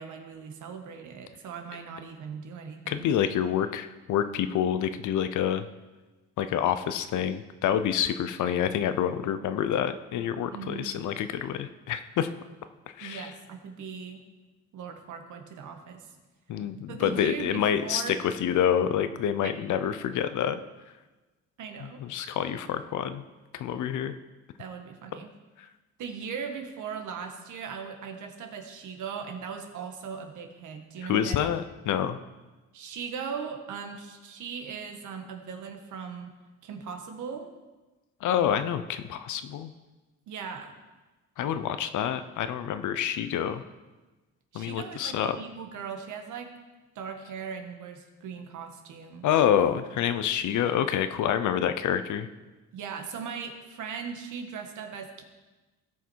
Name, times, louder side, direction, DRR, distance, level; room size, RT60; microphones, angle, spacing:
voice 1, 0.0-3.2 10.5-10.9 13.0-14.2 14.7-16.1 16.9-18.2 19.4-19.5 21.6-22.0 24.6-25.3 26.0-31.4 32.7-36.3 36.6-37.5 40.3-40.7 44.5-46.5 46.9-49.2 52.7-55.2, right 6 dB, 80° right, 5 dB, 1.6 m, -39 dB
voice 2, 2.9-5.6 6.4-12.3 13.0-13.3 16.5-20.6 21.8-23.2 23.5-24.2 25.6-25.7 31.1-32.2 38.2-39.7 41.4-43.6 44.5-45.4 49.2-52.3, left 9 dB, 75° left, 11 dB, 0.8 m, -27 dB
17.0 x 5.9 x 4.7 m, 1.2 s
cardioid pair, 90°, 30 cm